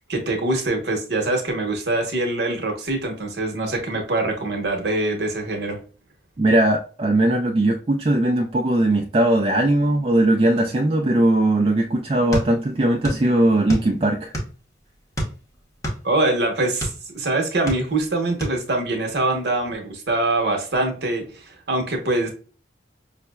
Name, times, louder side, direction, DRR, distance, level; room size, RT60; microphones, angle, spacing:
voice 1, 0.1-5.8 16.0-22.3, right 2 dB, 60° right, 0.9 m, -24 dB
voice 2, 6.4-14.3, right 1 dB, 30° right, 0.3 m, -19 dB
sound 1, 12.3-13.3 13.5-14.7 15.1-17.0 17.5-18.1 18.4-18.6, equal, 15° left, 0.7 m, -28 dB
5.5 x 2.0 x 2.2 m
head